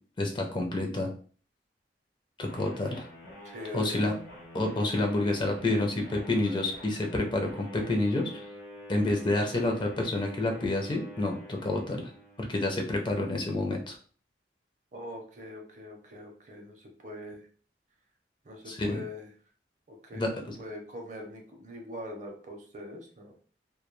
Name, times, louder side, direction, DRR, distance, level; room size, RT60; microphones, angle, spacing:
voice 1, 0.2-1.1 2.4-3.0 3.7-4.1 4.5-8.5 8.9-12.1 12.4-14.0 18.7-19.0 20.1-20.6, left 2 dB, 25° left, 2 dB, 0.4 m, -29 dB
sound 1, 2.4-12.7, equal, 65° left, 0.9 m, -47 dB
voice 2, 3.4-4.1 14.9-17.5 18.4-19.3 19.9-23.3, left 1 dB, 45° right, 2 dB, 0.6 m, -43 dB
2.2 x 2.2 x 3.0 m, 0.42 s
head